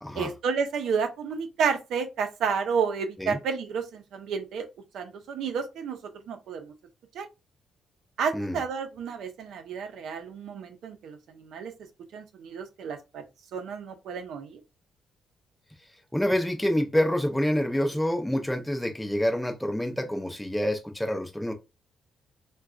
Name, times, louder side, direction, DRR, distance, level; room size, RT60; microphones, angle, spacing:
voice 1, 0.1-4.7 4.9-6.0 6.3-6.7 7.1-7.3 8.2-11.7 12.1-13.2 13.5-14.6, right 6 dB, 75° right, 0.6 m, -31 dB
voice 2, 16.1-21.5, left 1 dB, 5° left, 0.5 m, -27 dB
3.7 x 2.3 x 2.4 m
cardioid pair, 90°, 0 cm